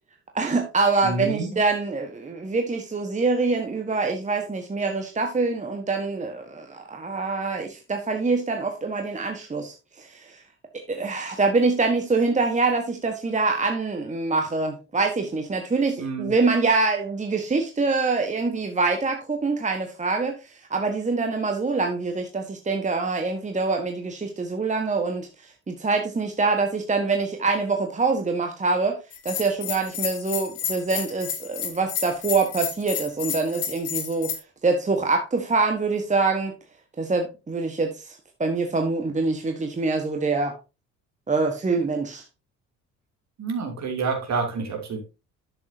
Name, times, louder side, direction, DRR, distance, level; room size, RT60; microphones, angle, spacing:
voice 1, 0.3-10.4 10.7-29.0 29.2-34.4 34.6-36.5 37.0-40.6 41.3-42.2, right 3 dB, 20° right, 1.4 m, -25 dB
voice 2, 1.0-1.5 16.0-16.3 43.4-45.0, right 4 dB, 45° right, 2.9 m, -28 dB
Bell, 29.1-34.4, left 8 dB, 60° left, 1.6 m, -31 dB
11.5 x 7.0 x 2.8 m
figure-of-eight pair, 50°, 39 cm